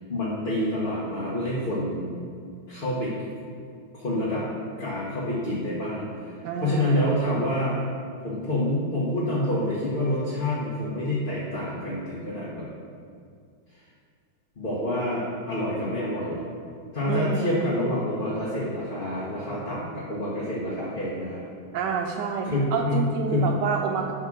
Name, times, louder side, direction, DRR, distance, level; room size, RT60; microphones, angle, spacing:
voice 1, 0.1-2.1 2.7-3.1 3.9-4.5 4.8-6.3 6.6-7.8 8.2-12.7 14.6-16.4 16.9-21.4 22.4-23.5, left 1 dB, 30° left, -8 dB, 1.3 m, -27 dB
voice 2, 6.4-7.2 17.1-17.7 21.7-24.1, right 6 dB, 75° right, 2 dB, 1.2 m, -28 dB
10.0 x 3.7 x 6.0 m, 2.2 s
omnidirectional pair, 2.0 m